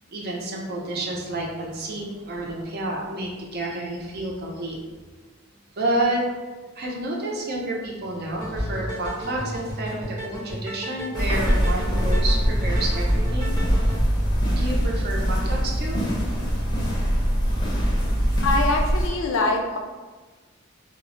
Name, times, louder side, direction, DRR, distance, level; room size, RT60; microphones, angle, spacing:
voice 1, 0.1-4.8 5.8-6.2 6.7-13.5 14.5-16.0 16.3-16.9, right 1 dB, 50° right, -2 dB, 0.5 m, -30 dB
sound 1, 8.3-14.0, equal, 20° right, 0.8 m, -33 dB
sound 2, 11.1-19.1, equal, 20° left, 0.6 m, -23 dB
voice 2, 18.4-19.8, left 2 dB, 65° left, 2 dB, 0.4 m, -23 dB
2.1 x 2.1 x 3.7 m, 1.3 s
head